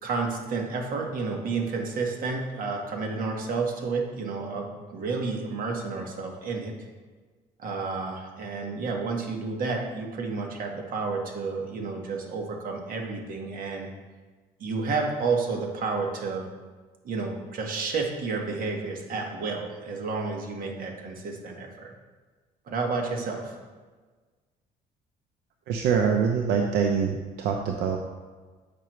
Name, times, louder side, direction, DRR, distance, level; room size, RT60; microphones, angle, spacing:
voice 1, 0.0-6.7 7.6-13.9 14.6-16.5 17.0-21.9 22.7-23.6, right 4 dB, 55° right, 1 dB, 1.5 m, -31 dB
voice 2, 25.7-28.0, right 6 dB, 85° right, 3 dB, 0.6 m, -24 dB
8.3 x 5.8 x 3.1 m, 1.4 s
cardioid pair, 110°, 17 cm